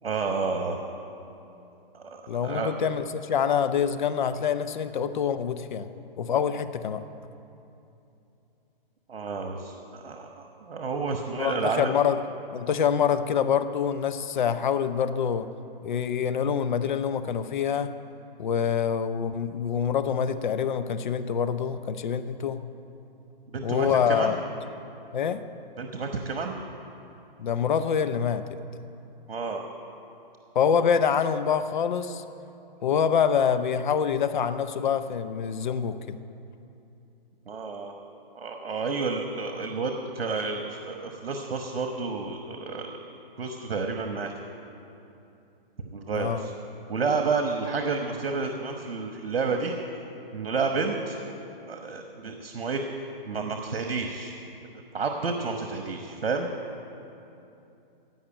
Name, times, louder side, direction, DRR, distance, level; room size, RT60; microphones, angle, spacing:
voice 1, 0.0-0.8 1.9-2.7 9.1-12.0 23.5-24.4 25.8-26.5 29.3-29.6 30.8-30.9 37.5-37.9 38.3-43.0 43.4-44.3 45.9-46.5 46.9-49.7 50.3-51.2 51.7-52.8 53.2-54.3 54.9-56.5, right 4 dB, 85° right, 4 dB, 1.2 m, -30 dB
voice 2, 2.3-5.9 6.2-7.0 11.4-12.2 12.5-15.5 15.8-18.0 18.4-22.6 23.6-24.4 25.1-25.4 27.4-28.4 30.5-32.2 32.8-36.2 46.1-46.4, left 7 dB, 55° left, 11 dB, 0.7 m, -26 dB
16.0 x 5.8 x 8.8 m, 2.8 s
hypercardioid pair, 155°, 29 cm